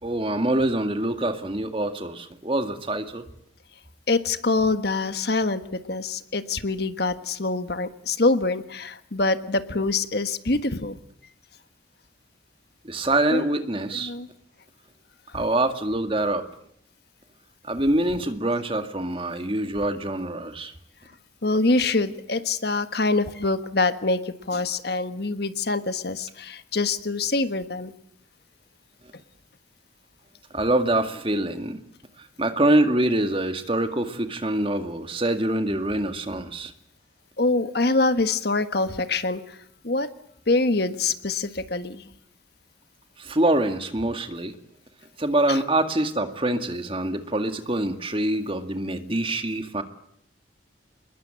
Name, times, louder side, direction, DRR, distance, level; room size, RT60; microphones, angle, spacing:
voice 1, 0.0-3.3 12.8-14.1 15.3-16.5 17.6-20.7 30.5-31.8 32.4-36.7 43.2-44.5 45.2-49.8, right 1 dB, 30° right, 7 dB, 2.0 m, -25 dB
voice 2, 4.1-11.0 13.3-13.4 13.9-14.3 15.3-15.4 21.4-27.9 37.4-39.6 39.8-40.1 40.5-42.0 45.5-45.6, left 3 dB, 55° left, 10 dB, 1.5 m, -25 dB
27.0 x 21.5 x 8.9 m, 0.69 s
head